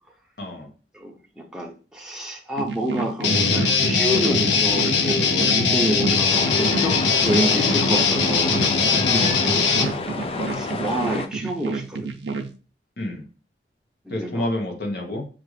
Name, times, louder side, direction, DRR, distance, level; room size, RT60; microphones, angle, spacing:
voice 1, 0.4-0.7 9.0-9.4 13.0-13.2 14.1-15.3, left 1 dB, 60° left, 2 dB, 1.0 m, -28 dB
voice 2, 0.9-8.6 9.8-10.0 10.5-12.1 14.1-14.4, right 1 dB, 5° right, 0 dB, 0.7 m, -28 dB
sound 1, 2.6-12.5, right 4 dB, 80° right, 0.5 m, -30 dB
Guitar, 3.2-9.9, left 5 dB, 90° left, 0.6 m, -20 dB
Seagulls and Salmon, 6.3-11.3, left 3 dB, 35° left, 0.3 m, -30 dB
5.8 x 2.4 x 3.2 m, 0.37 s
head